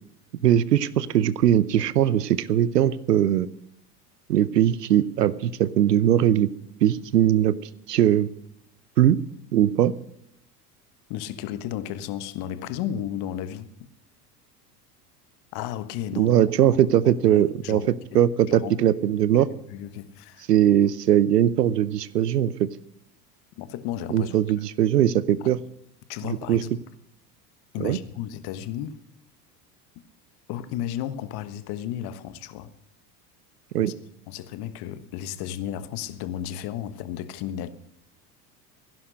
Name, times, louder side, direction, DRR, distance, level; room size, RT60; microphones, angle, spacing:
voice 1, 0.4-3.5 4.3-6.5 6.8-7.5 7.9-8.3 9.0-9.2 9.5-9.9 16.2-19.5 20.5-22.7 24.1-25.6 26.2-26.6 27.8-28.0 33.7-33.9, right 11 dB, 85° right, 0.9 m, -20 dB
voice 2, 11.1-13.9 15.5-16.3 17.3-18.9 19.3-19.4 19.7-20.5 23.6-24.3 26.1-26.7 27.7-29.0 30.5-32.7 33.8-33.9 34.3-37.7, left 11 dB, 55° left, 1.4 m, -33 dB
16.0 x 11.0 x 6.4 m
hypercardioid pair, 80°, 47 cm